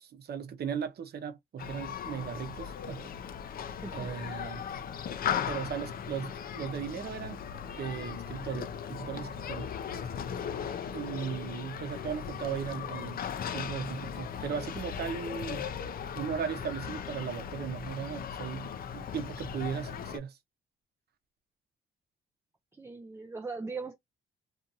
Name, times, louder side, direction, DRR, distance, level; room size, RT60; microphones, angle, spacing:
voice 1, 0.0-3.1 3.9-4.6 5.5-7.4 7.7-9.7 10.9-13.2 13.5-15.7 16.1-20.4, right 7 dB, 55° right, 0.8 m, -37 dB
Human group actions, 1.6-20.2, left 8 dB, 50° left, 0.4 m, -38 dB
voice 2, 3.8-4.6 22.7-24.0, right 4 dB, 15° right, 0.4 m, -40 dB
2.6 x 2.5 x 2.6 m
cardioid pair, 90°, 20 cm